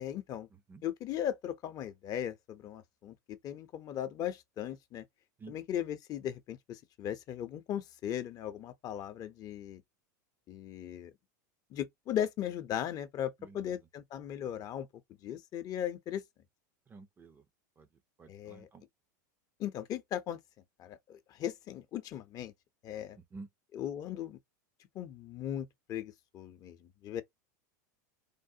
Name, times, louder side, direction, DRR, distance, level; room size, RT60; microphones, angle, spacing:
voice 1, 0.0-0.5 0.8-5.0 5.5-9.8 10.5-11.1 11.7-14.9 15.2-16.2 18.3-18.7 19.6-20.4 20.8-22.5 22.8-23.2 23.7-24.4 24.9-26.8 27.0-27.2, left 10 dB, 40° left, 0.6 m, -38 dB
voice 2, 0.5-0.8 5.4-5.6 13.4-13.8 16.9-17.4 17.8-17.9 18.2-18.8 23.2-23.5, right 3 dB, 20° right, 0.5 m, -51 dB
3.4 x 2.1 x 2.7 m
supercardioid pair, 115°, 10 cm